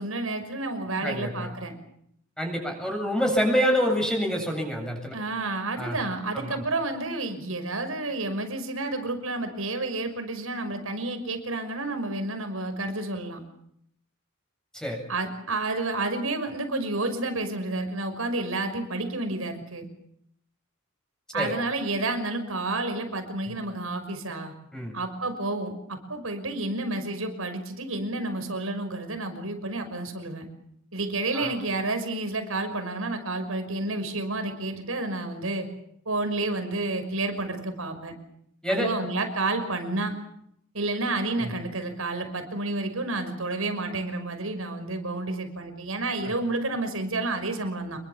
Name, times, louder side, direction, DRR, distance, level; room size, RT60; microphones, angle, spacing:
voice 1, 0.0-1.8 5.1-13.4 15.1-19.9 21.3-24.5 24.9-30.5 30.9-35.7 36.1-38.2 38.7-40.1 40.7-48.0, right 2 dB, 90° right, 7 dB, 5.9 m, -30 dB
voice 2, 1.0-1.5 2.4-5.2 5.8-6.0 6.3-6.6 14.7-15.0 21.3-21.5 24.7-24.9 31.3-31.5 38.6-38.9 41.4-41.5, equal, 5° left, 2 dB, 7.9 m, -27 dB
27.5 x 22.5 x 7.2 m, 0.71 s
head